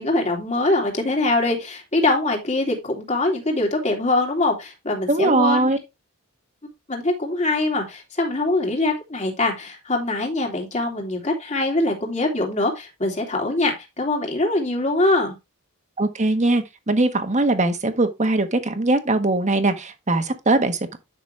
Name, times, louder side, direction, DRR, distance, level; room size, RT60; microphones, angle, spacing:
voice 1, 0.0-5.7 6.9-15.3, left 2 dB, 35° left, 3.1 m, -23 dB
voice 2, 5.1-5.8 16.0-21.0, right 2 dB, 35° right, 1.4 m, -21 dB
10.5 x 6.2 x 3.3 m
head